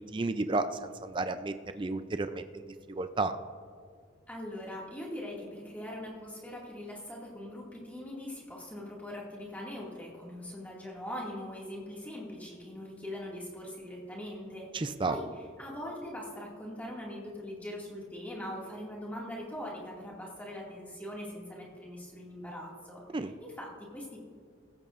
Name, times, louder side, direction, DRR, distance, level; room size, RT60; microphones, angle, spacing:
voice 1, 0.1-3.4 14.7-15.2 23.1-23.3, right 3 dB, 25° right, 10 dB, 0.4 m, -32 dB
voice 2, 4.3-15.3 15.6-24.2, left 1 dB, 10° left, -4 dB, 2.1 m, -42 dB
16.5 x 14.5 x 2.5 m, 2.1 s
head